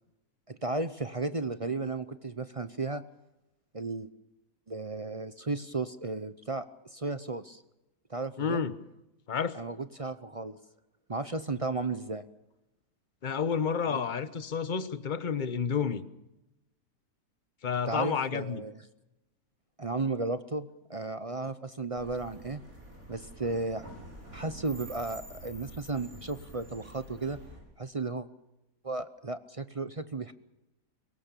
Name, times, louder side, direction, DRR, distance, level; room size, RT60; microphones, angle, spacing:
voice 1, 0.5-3.0 3.7-4.1 4.7-6.6 6.9-7.6 8.1-8.6 9.5-10.6 11.1-12.2 13.9-14.1 17.9-18.8 19.8-22.6 23.1-23.8 24.3-27.4 27.8-28.3 28.8-30.3, right 3 dB, 35° right, 13 dB, 0.6 m, -34 dB
voice 2, 8.4-8.7 9.3-9.6 13.2-16.0 17.6-18.6, left 6 dB, 35° left, 14 dB, 1.1 m, -30 dB
sound 1, 22.0-27.6, right 1 dB, 60° right, 6.6 m, -48 dB
23.5 x 19.0 x 6.9 m, 0.94 s
omnidirectional pair, 1.7 m